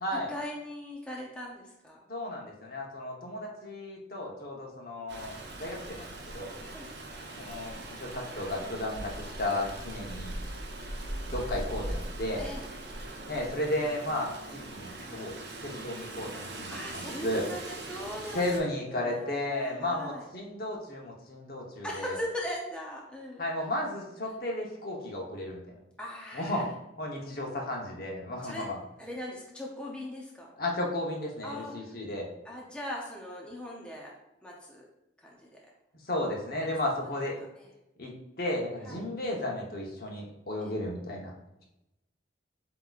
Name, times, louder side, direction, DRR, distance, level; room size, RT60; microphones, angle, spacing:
voice 1, 0.1-2.0 6.6-6.9 12.4-12.7 16.7-20.3 21.8-23.4 24.3-24.4 26.0-26.6 28.4-28.7 29.0-30.5 31.4-32.0 32.4-34.1 34.4-34.8 35.2-35.6 36.6-36.7 37.6-37.7 38.9-39.0 40.6-40.7, left 1 dB, 5° left, -3 dB, 0.5 m, -40 dB
voice 2, 2.1-6.6 7.4-10.4 11.3-12.5 13.3-15.3 15.6-17.5 18.3-22.2 23.4-25.7 26.3-26.7 27.0-28.8 30.6-32.3 36.1-37.4 38.0-38.1 38.4-41.3, left 1 dB, 50° left, -1 dB, 0.9 m, -34 dB
Rain, 5.1-18.6, right 1 dB, 60° right, 0.8 m, -40 dB
7.6 x 2.9 x 2.4 m, 0.90 s
head